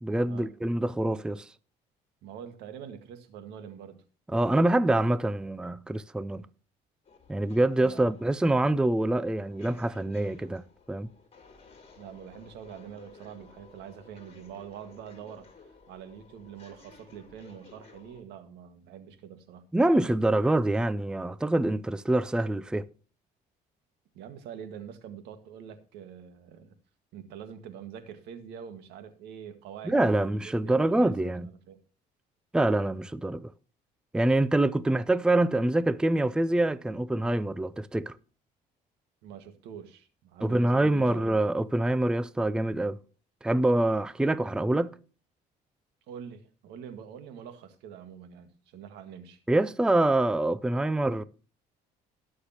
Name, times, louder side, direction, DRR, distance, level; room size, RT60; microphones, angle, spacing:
voice 1, 0.0-1.5 4.3-6.4 7.3-10.6 10.9-11.1 19.7-22.9 29.9-31.5 32.5-33.5 34.1-38.1 40.4-43.0 43.4-45.0 49.5-51.2, right 1 dB, 5° right, 0.5 m, -25 dB
voice 2, 2.2-4.0 7.7-8.1 11.9-15.5 15.9-19.7 24.1-26.8 27.1-31.8 39.2-41.2 46.1-49.4, right 8 dB, 90° right, 1.8 m, -45 dB
sound 1, 7.0-18.2, left 4 dB, 35° left, 4.1 m, -55 dB
19.5 x 6.6 x 2.9 m
cardioid pair, 110°, 17 cm